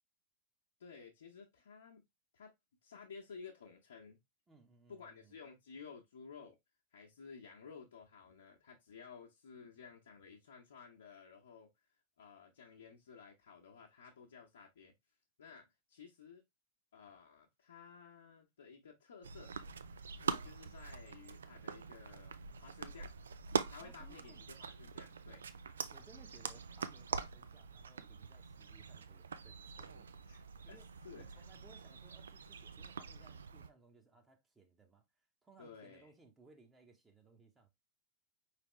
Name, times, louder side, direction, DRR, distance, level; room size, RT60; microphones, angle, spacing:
voice 1, 0.8-2.0 2.3-2.5 2.8-4.2 4.9-6.6 6.9-11.7 12.2-14.9 15.4-16.4 16.9-19.5 20.2-23.1 23.7-25.4 30.3-30.8 31.0-31.4 35.6-36.1, left 5 dB, 65° left, 0.9 m, -55 dB
voice 2, 4.5-5.4 23.8-24.5 25.4-25.5 25.9-37.7, right 3 dB, 15° right, 1.0 m, -64 dB
sound 1, 19.2-33.7, right 6 dB, 70° right, 0.4 m, -44 dB
5.1 x 3.4 x 3.1 m
figure-of-eight pair, 90°, 0 cm